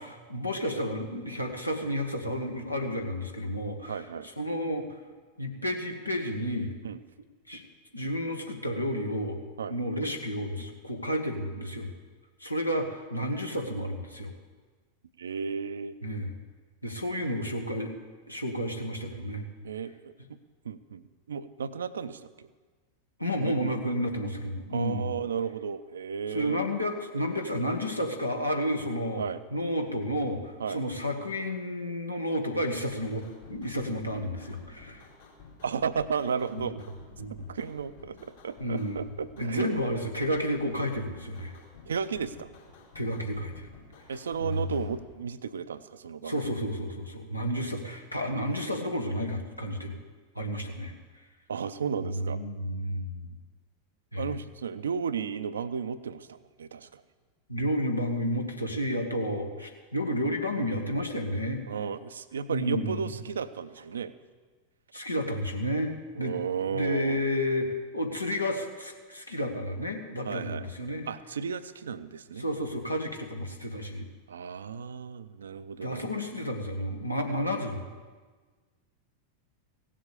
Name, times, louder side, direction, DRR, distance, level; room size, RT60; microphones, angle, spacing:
voice 1, 0.0-4.0 4.4-5.0 5.4-6.7 7.5-7.6 7.9-9.4 9.7-11.9 12.4-14.3 16.0-16.4 16.8-18.0 18.3-19.4 23.2-25.1 26.3-29.2 29.5-35.1 36.5-36.7 37.2-37.3 38.6-39.0 39.4-41.5 42.9-43.7 44.4-44.7 46.2-50.0 50.3-50.9 52.0-53.3 54.1-54.3 57.5-61.6 62.5-63.0 64.9-66.4 66.7-71.1 72.4-74.1 75.8-77.9, equal, 85° left, 2 dB, 1.3 m, -31 dB
voice 2, 3.9-4.3 6.8-7.0 9.6-9.8 15.2-16.0 19.6-20.1 20.6-22.5 23.4-23.8 24.7-26.6 29.2-29.4 30.6-30.8 35.6-36.7 37.5-39.8 41.9-42.5 44.1-46.6 51.5-52.4 54.2-57.0 61.7-64.1 66.1-67.2 70.2-70.7 71.1-72.5 74.3-76.2, right 6 dB, 70° right, 13 dB, 0.5 m, -34 dB
sound 1, 32.9-45.1, left 4 dB, 65° left, 3.4 m, -52 dB
16.5 x 7.6 x 6.7 m, 1.4 s
figure-of-eight pair, 90°, 0 cm